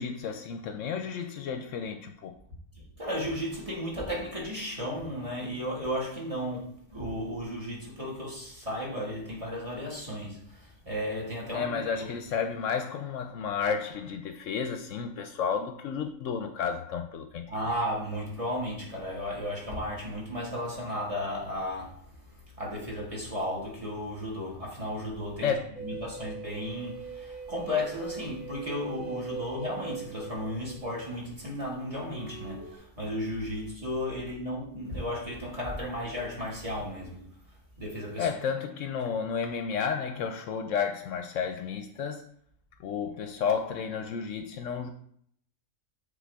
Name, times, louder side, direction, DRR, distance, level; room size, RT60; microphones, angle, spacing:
voice 1, 0.0-2.4 11.5-17.5 25.4-25.7 38.2-42.3 42.8-44.9, left 6 dB, 70° left, 0.9 m, -32 dB
voice 2, 2.7-12.1 17.5-25.5 25.8-37.3 37.8-38.3, left 1 dB, 25° right, 1.8 m, -34 dB
sound 1, 25.7-31.3 32.1-32.8, right 5 dB, 85° right, 1.9 m, -41 dB
7.4 x 3.9 x 3.4 m
omnidirectional pair, 1.4 m